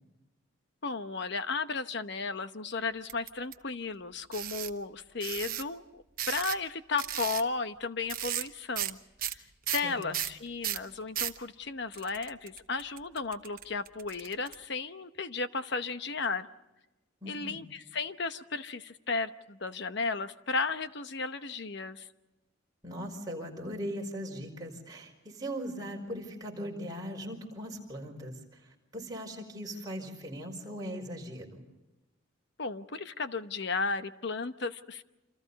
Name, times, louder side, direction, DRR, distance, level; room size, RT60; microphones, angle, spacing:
voice 1, 0.8-9.0 9.3-9.4 9.7-16.5 17.3-22.1 32.6-35.0, left 4 dB, 55° left, 10 dB, 1.0 m, -34 dB
sound 1, 3.1-3.5 4.3-4.7 5.2-5.6 6.2-6.7 7.0-7.4 8.1-8.5 8.8-8.9 9.2-11.4 11.9-14.5, right 12 dB, 45° right, 1.0 m, -35 dB
voice 2, 9.7-10.1 17.2-17.6 22.8-28.6 28.9-31.6, equal, 20° right, 0 dB, 4.9 m, -39 dB
28.0 x 27.0 x 4.1 m, 1.0 s
head